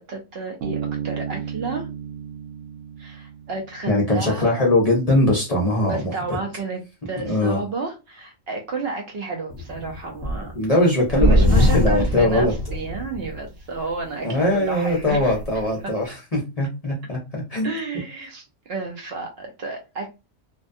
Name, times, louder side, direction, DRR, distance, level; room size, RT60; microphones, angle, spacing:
voice 1, 0.0-1.9 3.0-4.6 5.9-6.8 7.1-10.5 11.1-15.2 17.6-20.1, right 3 dB, 60° right, 0.8 m, -31 dB
Bass guitar, 0.6-4.1, right 8 dB, 85° right, 1.0 m, -33 dB
voice 2, 3.9-6.1 7.2-7.6 10.5-12.5 14.2-17.7, left 1 dB, 40° left, 0.6 m, -21 dB
sound 1, 9.5-10.6 11.1-13.5 13.9-14.0 14.7-15.4, equal, 10° left, 0.8 m, -22 dB
2.5 x 2.2 x 2.5 m
omnidirectional pair, 1.3 m